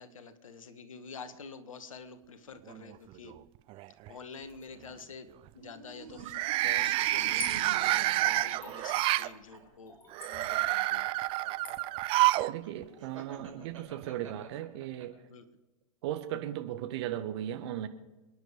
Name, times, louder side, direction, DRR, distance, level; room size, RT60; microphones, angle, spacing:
voice 1, 0.0-3.3 4.1-5.3 5.5-6.3 6.6-9.9 10.3-11.1 15.3-15.4, left 5 dB, 70° left, 10 dB, 1.6 m, -47 dB
sound 1, 2.7-3.3 3.7-4.1 6.2-9.3 10.1-12.5 12.8-12.9 14.0-14.1, right 18 dB, 30° right, 0.5 m, -29 dB
sound 2, 5.5-9.6 10.8-15.1, right 6 dB, 65° right, 5.5 m, -46 dB
Splash splatter / Trickle dribble, 7.1-13.5 13.8-13.9, left 2 dB, 20° left, 6.9 m, -45 dB
voice 2, 12.5-15.1 16.0-17.9, right 12 dB, 50° right, 9 dB, 1.5 m, -37 dB
28.0 x 10.0 x 5.0 m, 1.1 s
figure-of-eight pair, 95°, 18 cm